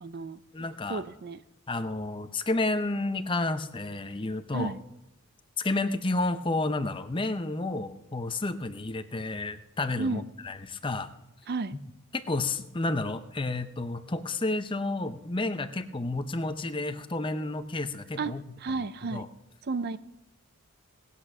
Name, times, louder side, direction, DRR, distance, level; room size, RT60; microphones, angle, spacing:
voice 1, 0.0-0.4 0.9-1.4 4.5-4.8 10.0-10.2 11.5-11.8 18.2-18.3 18.6-19.3 19.6-20.0, right 4 dB, 45° right, 14 dB, 0.5 m, -32 dB
voice 2, 0.5-1.0 1.7-4.7 5.6-11.1 12.1-18.4 18.7-18.8 19.1-19.3, left 2 dB, 20° left, 10 dB, 0.7 m, -31 dB
19.0 x 8.4 x 6.1 m, 0.89 s
head